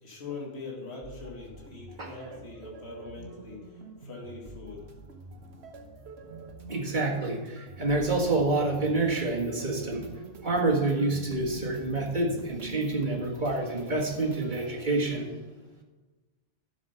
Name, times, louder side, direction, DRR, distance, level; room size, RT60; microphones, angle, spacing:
voice 1, 0.0-4.9, left 3 dB, 70° left, -2 dB, 2.1 m, -42 dB
sound 1, 1.0-14.7, right 3 dB, 70° right, 1.4 m, -46 dB
voice 2, 6.7-15.4, right 2 dB, 45° right, 0 dB, 1.9 m, -28 dB
11.5 x 7.1 x 5.6 m, 1.2 s
omnidirectional pair, 1.1 m